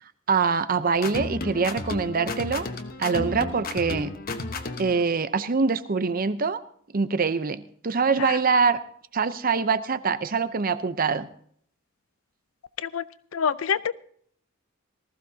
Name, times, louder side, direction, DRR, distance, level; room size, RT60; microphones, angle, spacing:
voice 1, 0.3-2.7 3.0-4.1 4.8-6.6 6.9-8.8 9.1-11.3, right 5 dB, 45° right, 13 dB, 0.7 m, -24 dB
sound 1, 1.0-5.0, left 2 dB, 45° left, 1.1 m, -33 dB
voice 2, 13.3-13.9, left 7 dB, 80° left, 17 dB, 0.5 m, -26 dB
19.0 x 15.0 x 2.8 m, 0.62 s
head